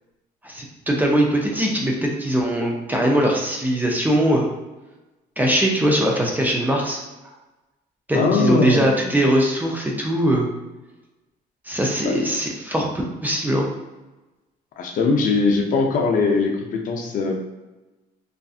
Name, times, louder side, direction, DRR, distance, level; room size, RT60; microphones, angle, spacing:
voice 1, 0.4-4.5 5.4-7.0 8.1-10.5 11.7-12.9 13.2-13.7, right 1 dB, 10° right, -1 dB, 0.4 m, -21 dB
voice 2, 8.1-9.2 12.0-12.1 14.8-17.4, left 4 dB, 55° left, 2 dB, 0.5 m, -21 dB
2.5 x 2.4 x 2.3 m, 1.1 s
cardioid pair, 110°, 17 cm